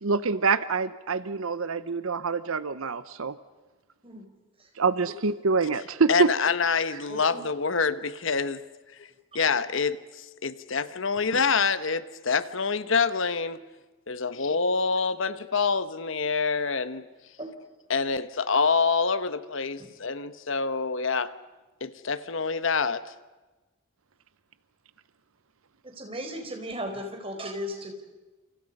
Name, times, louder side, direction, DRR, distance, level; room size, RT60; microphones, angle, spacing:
voice 1, 0.0-3.4 4.8-6.3, right 4 dB, 80° right, 0.8 m, -26 dB
voice 2, 6.1-8.6 9.0-9.1 9.3-13.6 14.1-17.0 17.9-21.3 21.8-23.0, left 5 dB, 65° left, 1.0 m, -26 dB
voice 3, 7.1-7.4 9.5-9.6 17.4-17.5 25.8-27.9, equal, 25° right, 4.3 m, -36 dB
28.5 x 28.5 x 5.4 m
head